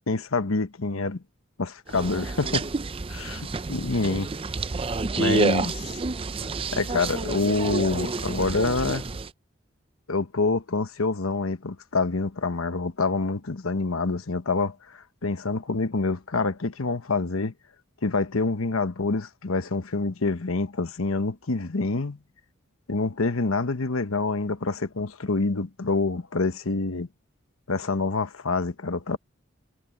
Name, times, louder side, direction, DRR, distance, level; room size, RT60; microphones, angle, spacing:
voice 1, 0.1-1.2 1.6-2.7 3.1-4.3 5.2-5.8 6.7-9.0 10.1-17.5 18.0-22.2 22.9-27.1 27.7-29.2, left 3 dB, 85° left, 1.1 m, -26 dB
sound 1, 1.9-9.3, right 3 dB, 25° right, 0.5 m, -29 dB
head